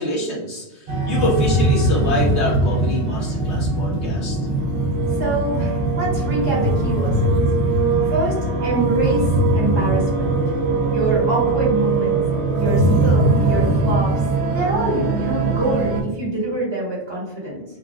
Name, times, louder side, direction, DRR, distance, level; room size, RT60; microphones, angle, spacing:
voice 1, 0.0-4.4, left 1 dB, 65° left, -5 dB, 1.3 m, -25 dB
sound 1, 0.9-16.0, right 2 dB, 80° right, 0.9 m, -20 dB
voice 2, 5.2-7.4 8.1-8.4 8.6-10.5 10.9-12.2 12.5-14.1 14.5-17.6, right 2 dB, 20° right, -6 dB, 1.3 m, -25 dB
3.3 x 2.4 x 2.2 m, 1.0 s
omnidirectional pair, 1.2 m